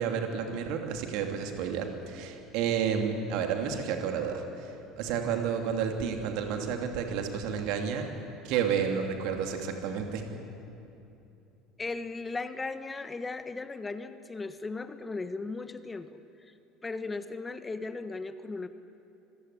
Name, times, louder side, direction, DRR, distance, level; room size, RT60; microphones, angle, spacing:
voice 1, 0.0-8.1 8.4-10.4, right 7 dB, 65° right, 4 dB, 2.8 m, -31 dB
voice 2, 11.8-16.6 16.8-18.7, left 3 dB, 20° left, 11 dB, 1.2 m, -37 dB
25.5 x 16.0 x 9.7 m, 2.8 s
hypercardioid pair, 65°, 0 cm